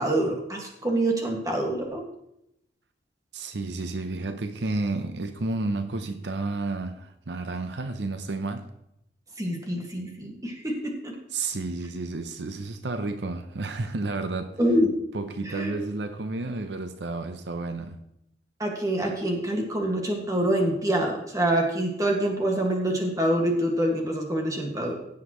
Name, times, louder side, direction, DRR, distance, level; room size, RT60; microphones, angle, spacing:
voice 1, 0.0-2.0 9.4-11.1 14.6-14.9 15.5-15.7 18.6-25.0, right 1 dB, 20° right, 1.7 m, -26 dB
voice 2, 3.3-8.7 11.3-14.6 15.1-18.0, right 3 dB, 70° right, 0.7 m, -31 dB
16.0 x 7.3 x 3.0 m
head